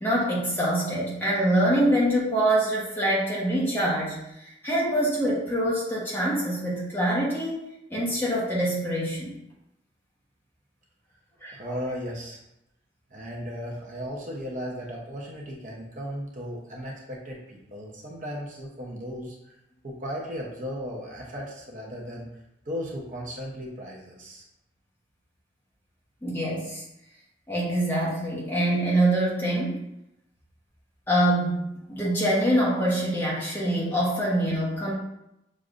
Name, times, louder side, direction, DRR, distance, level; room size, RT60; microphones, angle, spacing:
voice 1, 0.0-7.6 7.9-9.3 11.4-11.8 26.2-26.8 27.5-29.8 31.1-34.9, right 1 dB, 10° left, -6 dB, 1.1 m, -25 dB
voice 2, 11.5-12.4 13.1-19.4 19.8-22.3 22.7-24.4, equal, 40° right, -2 dB, 0.8 m, -36 dB
6.4 x 3.2 x 2.5 m, 0.84 s
head